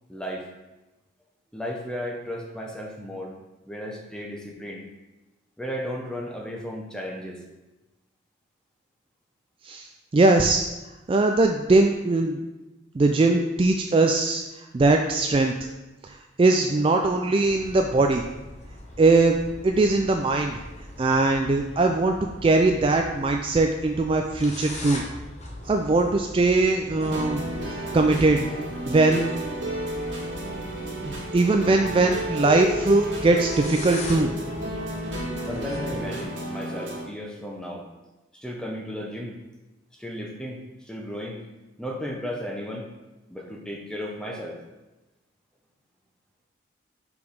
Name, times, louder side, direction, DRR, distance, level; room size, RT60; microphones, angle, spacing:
voice 1, 0.1-0.5 1.5-3.3 3.7-4.8 5.6-7.4 35.5-37.8 38.3-39.4 39.9-40.6 40.9-41.4 41.8-42.9 43.3-44.6, equal, 5° left, 0 dB, 0.8 m, -34 dB
voice 2, 10.1-10.6 11.1-12.4 12.9-14.4 14.7-15.5 16.0-18.2 19.0-19.4 19.6-20.6 21.0-25.0 25.7-27.4 27.9-28.4 28.9-29.3 31.0-34.3, right 2 dB, 30° right, 3 dB, 0.3 m, -21 dB
sound 1, 17.4-36.2, left 1 dB, 35° left, 0.9 m, -40 dB
sound 2, 27.0-37.0, equal, 75° right, 1.7 m, -32 dB
5.1 x 4.8 x 5.2 m, 1.1 s
head